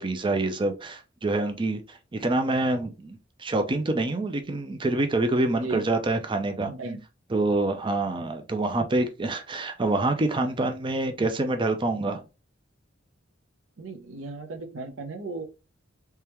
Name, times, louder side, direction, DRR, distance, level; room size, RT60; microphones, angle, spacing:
voice 1, 0.0-6.7 7.3-12.2, right 2 dB, 25° right, 0.5 m, -26 dB
voice 2, 5.6-5.9 6.6-7.0 13.8-15.4, right 3 dB, 85° right, 0.7 m, -36 dB
3.5 x 3.3 x 3.0 m
head